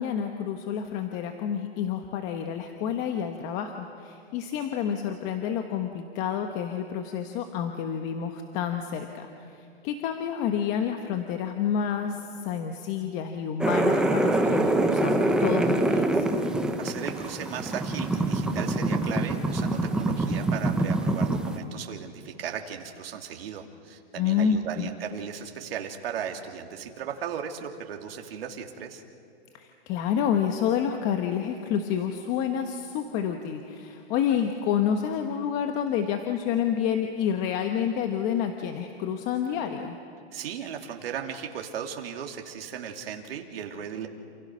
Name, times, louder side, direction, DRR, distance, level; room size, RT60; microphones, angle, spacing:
voice 1, 0.0-9.3 9.8-16.2 24.2-24.9 29.5-40.0, left 8 dB, 25° left, 6 dB, 1.1 m, -29 dB
sound 1, 13.6-21.6, right 2 dB, ahead, 0.8 m, -25 dB
voice 2, 16.8-29.0 40.3-44.1, right 8 dB, 60° right, 3 dB, 3.1 m, -36 dB
28.5 x 27.5 x 6.3 m, 2.6 s
hypercardioid pair, 160°, 34 cm